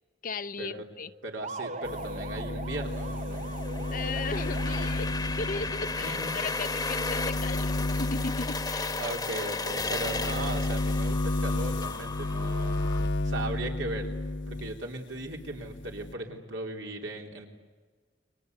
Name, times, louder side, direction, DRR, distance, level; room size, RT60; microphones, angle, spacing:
voice 1, 0.2-1.1 3.9-9.0, left 4 dB, 50° left, 13 dB, 0.7 m, -37 dB
voice 2, 1.2-3.4 6.0-6.4 9.0-12.8 13.2-14.1 14.5-17.5, right 2 dB, 80° right, 2 dB, 3.8 m, -37 dB
sound 1, 1.4-5.3, right 2 dB, 40° right, 1.0 m, -40 dB
sound 2, 1.8-14.8 15.1-16.1, left 2 dB, 75° left, 1.3 m, -32 dB
sound 3, 3.3-13.1, left 3 dB, 20° left, 1.2 m, -34 dB
30.0 x 24.0 x 8.2 m, 1.4 s
head